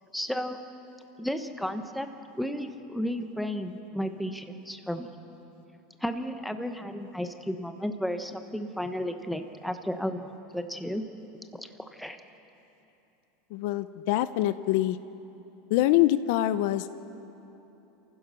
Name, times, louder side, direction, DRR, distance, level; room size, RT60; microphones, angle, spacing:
voice 1, 0.1-0.6 1.2-2.1 2.4-5.1 6.0-11.0 11.5-12.2, equal, ahead, 7 dB, 0.9 m, -33 dB
voice 2, 13.5-15.0 15.7-16.9, left 14 dB, 55° left, 13 dB, 0.6 m, -25 dB
28.0 x 15.5 x 6.2 m, 3.0 s
supercardioid pair, 165°, 0 cm